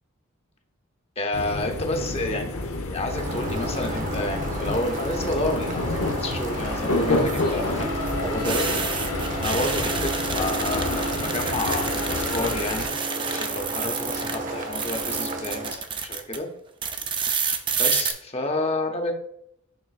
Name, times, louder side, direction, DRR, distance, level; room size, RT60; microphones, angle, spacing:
voice 1, 1.2-8.7 9.4-13.0 13.3-16.5 17.8-19.1, left 2 dB, 30° left, 4 dB, 0.8 m, -30 dB
sound 1, 1.3-12.8, left 2 dB, 90° left, 0.9 m, -29 dB
sound 2, 3.1-15.7, right 1 dB, 40° right, 1.0 m, -33 dB
sound 3, 4.7-5.2 7.1-14.4 14.7-16.4 16.8-18.1, right 6 dB, 20° right, 0.5 m, -29 dB
10.5 x 3.8 x 2.4 m, 0.76 s
head